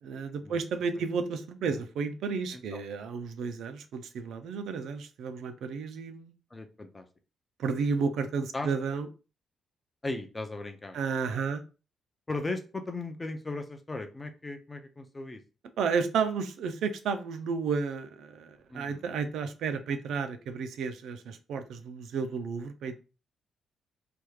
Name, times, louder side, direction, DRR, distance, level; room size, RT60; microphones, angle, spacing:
voice 1, 0.0-6.3 7.6-9.1 10.9-11.6 15.8-23.0, right 5 dB, 80° right, 8 dB, 0.4 m, -32 dB
voice 2, 6.5-7.1 8.5-8.7 10.0-11.0 12.3-15.4 18.7-19.0, left 2 dB, 15° left, 7 dB, 0.4 m, -37 dB
3.4 x 2.3 x 3.1 m, 0.33 s
cardioid pair, 160°, 0 cm